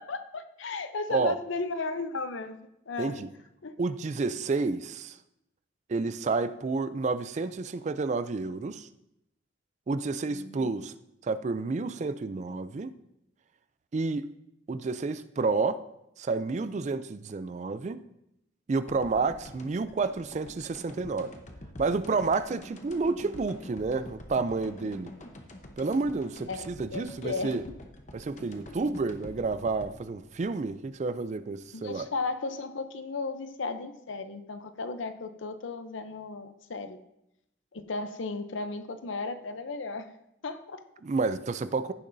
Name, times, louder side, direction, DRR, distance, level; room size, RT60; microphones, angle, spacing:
voice 1, 0.0-2.6 2.9-3.3 3.6-3.8 10.3-10.7 24.8-25.0 26.5-27.6 31.7-37.0 37.7-40.1 40.4-40.8, left 3 dB, 80° left, 0.7 m, -35 dB
voice 2, 3.0-3.3 3.8-5.2 5.9-8.9 9.9-10.9 11.2-12.9 13.9-14.3 14.7-15.8 16.2-18.0 18.7-21.4 21.8-25.1 25.8-27.6 28.1-32.1 41.0-41.9, right 4 dB, 35° right, 0.3 m, -30 dB
sound 1, 18.9-31.7, left 1 dB, 40° left, 0.9 m, -47 dB
15.0 x 6.9 x 2.7 m
head